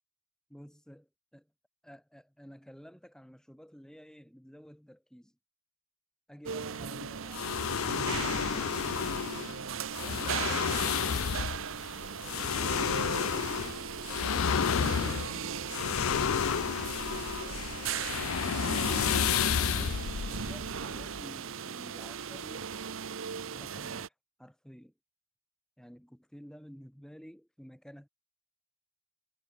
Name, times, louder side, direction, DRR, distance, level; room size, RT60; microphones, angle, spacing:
voice 1, 0.5-1.5 1.8-5.4 6.3-9.3 9.9-11.5 19.4-22.7 23.5-24.1 24.4-24.9 25.8-28.1, equal, 5° left, 7.0 m, -52 dB
sound 1, 6.4-24.1, right 7 dB, 65° right, 0.7 m, -38 dB
sound 2, 7.3-21.2, left 7 dB, 80° left, 0.6 m, -31 dB
head